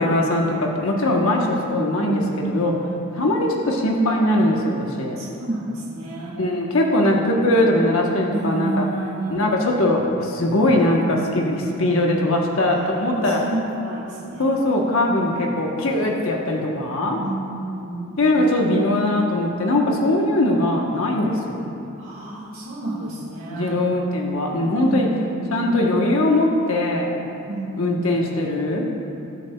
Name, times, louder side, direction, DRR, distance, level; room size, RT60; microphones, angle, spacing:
voice 1, 0.0-2.7 3.1-5.2 6.4-8.8 9.3-13.4 14.4-17.2 18.2-21.6 23.5-25.1 25.5-27.1 27.8-28.9, left 1 dB, 65° left, -1 dB, 1.0 m, -20 dB
voice 2, 2.0-3.1 5.1-6.4 8.3-9.5 12.6-14.5 17.1-18.2 22.0-23.8 24.8-25.8 27.5-28.1, right 2 dB, 60° right, -8 dB, 1.6 m, -30 dB
20.0 x 8.1 x 2.3 m, 2.7 s
head